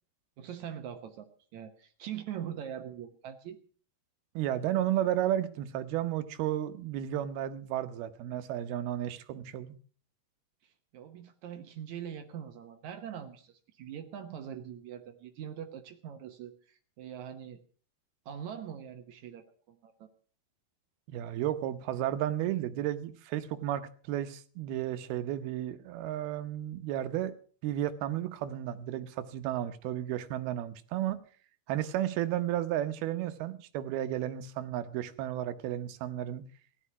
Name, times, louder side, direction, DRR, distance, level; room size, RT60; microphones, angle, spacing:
voice 1, 0.4-3.6 10.6-17.6 18.3-20.1, right 9 dB, 65° right, 1.9 m, -43 dB
voice 2, 4.4-9.7 21.1-27.3 27.6-31.2 31.7-36.4, right 12 dB, 85° right, 2.9 m, -33 dB
15.5 x 11.5 x 5.9 m
omnidirectional pair, 4.4 m